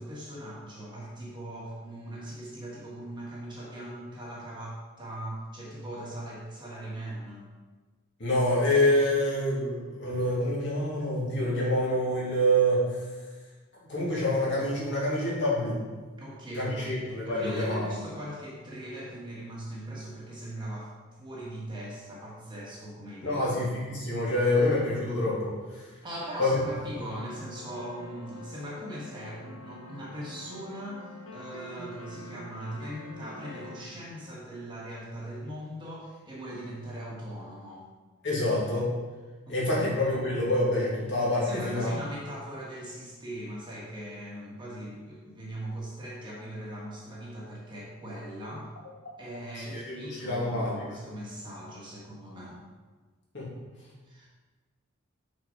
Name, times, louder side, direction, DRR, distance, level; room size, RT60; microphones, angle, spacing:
voice 1, 0.0-7.5 16.2-23.5 26.0-37.9 39.5-40.0 41.4-48.7 49.2-52.6 54.0-54.3, right 1 dB, 20° right, -5 dB, 1.4 m, -40 dB
voice 2, 8.2-12.8 13.8-15.8 16.6-17.9 23.2-25.5 26.4-26.6 38.2-38.9 39.5-41.9 49.6-50.8 53.3-53.5, left 1 dB, 55° left, -6 dB, 2.2 m, -26 dB
sound 1, 27.0-33.8, left 1 dB, 80° left, 1.1 m, -46 dB
6.1 x 4.6 x 5.1 m, 1.3 s
head